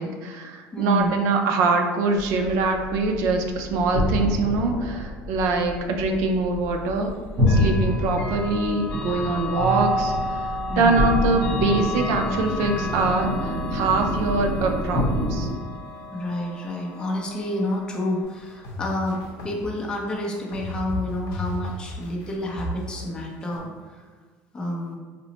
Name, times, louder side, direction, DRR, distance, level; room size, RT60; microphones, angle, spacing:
voice 1, 0.0-7.1 7.5-15.5, right 3 dB, 70° right, 4 dB, 0.4 m, -23 dB
voice 2, 0.7-1.1 9.1-9.3 10.7-11.0 16.1-24.0 24.5-25.0, left 1 dB, 15° left, -2 dB, 0.6 m, -29 dB
sound 1, 2.1-15.5, left 1 dB, 20° right, 0.8 m, -28 dB
Chime / Clock, 7.4-18.2, left 1 dB, 55° left, 0.9 m, -31 dB
sound 2, 18.2-23.6, left 1 dB, 70° left, 0.6 m, -34 dB
2.9 x 2.1 x 4.0 m, 1.4 s
cardioid pair, 140°, 5 cm